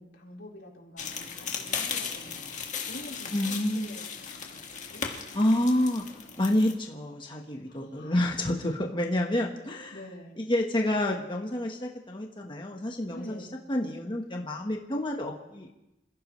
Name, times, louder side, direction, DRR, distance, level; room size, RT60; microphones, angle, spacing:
voice 1, 0.0-2.6 2.9-3.4 3.7-5.0 7.7-8.1 9.9-10.3 13.1-13.5, equal, 90° left, -3 dB, 4.4 m, -46 dB
sound 1, 1.0-6.7, left 6 dB, 45° left, 1.9 m, -36 dB
voice 2, 3.3-4.0 5.3-6.0 6.4-9.9 10.4-13.4 13.7-15.8, left 1 dB, 30° left, 0 dB, 1.3 m, -28 dB
27.0 x 16.0 x 3.3 m, 0.93 s
head